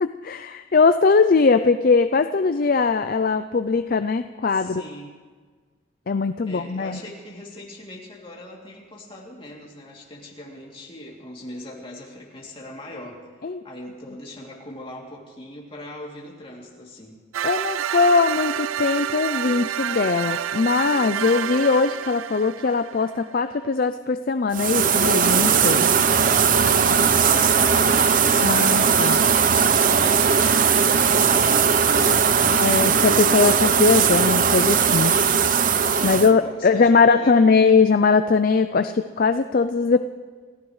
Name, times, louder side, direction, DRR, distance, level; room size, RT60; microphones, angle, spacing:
voice 1, 0.0-4.8 6.1-7.0 13.4-13.6 17.4-25.9 28.4-29.2 32.5-35.1 36.0-40.0, left 4 dB, 45° left, 10 dB, 0.4 m, -20 dB
voice 2, 4.5-5.2 6.4-17.2 27.2-32.9 36.0-37.6, left 1 dB, 25° left, -3 dB, 2.8 m, -40 dB
sound 1, 17.3-23.2, right 10 dB, 85° right, 0.4 m, -28 dB
sound 2, 24.5-36.3, right 6 dB, 45° right, 0.6 m, -18 dB
29.0 x 15.0 x 3.2 m, 1.5 s
head